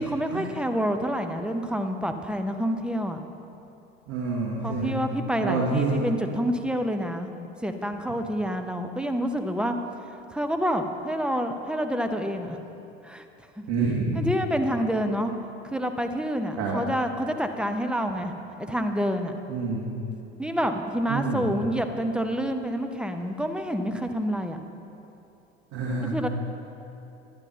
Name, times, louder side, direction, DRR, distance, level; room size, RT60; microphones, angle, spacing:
voice 1, 0.0-3.2 4.6-7.3 7.6-9.8 10.3-12.6 13.0-13.2 13.6-13.7 14.2-15.3 15.6-18.3 18.6-19.3 20.4-24.6 26.0-26.3, equal, 5° right, 6 dB, 0.8 m, -28 dB
voice 2, 4.1-5.0 5.4-5.9 13.7-14.2 16.6-16.8 19.5-19.8 21.1-21.5 25.7-26.2, right 4 dB, 55° right, -4 dB, 2.0 m, -27 dB
12.0 x 9.8 x 4.3 m, 2.8 s
hypercardioid pair, 75°, 32 cm